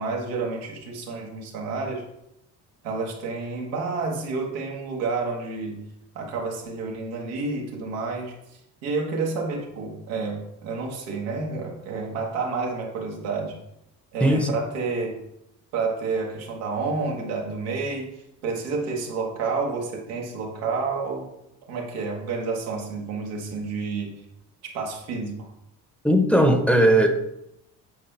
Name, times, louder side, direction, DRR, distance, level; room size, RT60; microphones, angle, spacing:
voice 1, 0.0-2.0 2.8-5.8 6.1-8.3 8.8-13.5 14.1-15.1 15.7-21.3 21.7-24.1 24.7-25.5, right 4 dB, 90° right, -1 dB, 1.4 m, -29 dB
voice 2, 26.0-27.1, right 1 dB, 5° left, 5 dB, 0.9 m, -18 dB
7.9 x 4.2 x 3.3 m, 0.82 s
hypercardioid pair, 60°, 43 cm